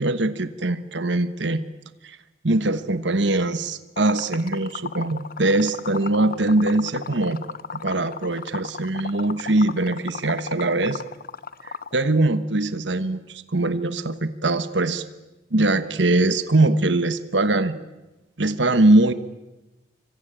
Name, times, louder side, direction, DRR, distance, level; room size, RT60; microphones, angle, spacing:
voice 1, 0.0-1.6 2.0-2.2 2.4-7.4 7.7-11.0 11.6-15.0 15.5-17.7 18.4-19.1, right 2 dB, 65° right, 12 dB, 1.3 m, -22 dB
Liquid, 4.0-11.9, left 5 dB, 50° left, 0.9 m, -35 dB
25.5 x 24.5 x 9.0 m, 1.0 s
head